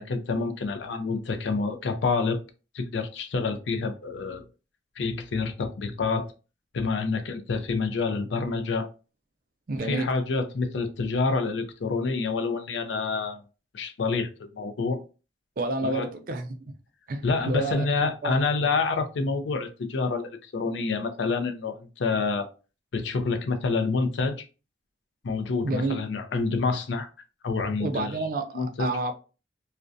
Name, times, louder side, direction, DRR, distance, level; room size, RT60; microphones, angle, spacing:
voice 1, 0.0-2.4 2.7-4.4 5.0-6.3 6.7-8.9 9.8-13.4 13.7-15.0 15.8-16.1 17.2-22.5 22.9-24.4 25.2-27.1 27.4-28.2 28.5-28.9, left 4 dB, 90° left, 0.4 m, -27 dB
voice 2, 9.7-10.1 15.6-16.5 17.1-17.9 18.2-18.4 25.6-26.0 27.8-29.1, right 2 dB, 50° right, 0.4 m, -29 dB
2.4 x 2.1 x 2.5 m
head